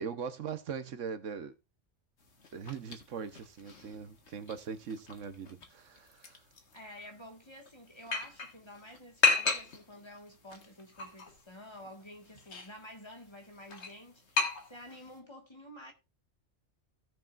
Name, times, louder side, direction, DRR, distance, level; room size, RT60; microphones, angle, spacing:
voice 1, 0.0-1.5 2.5-6.4, right 6 dB, 80° right, 1.3 m, -40 dB
sound 1, 2.2-15.2, left 4 dB, 65° left, 1.8 m, -36 dB
voice 2, 6.7-15.9, left 1 dB, 20° left, 1.7 m, -50 dB
17.0 x 6.6 x 2.5 m
omnidirectional pair, 1.3 m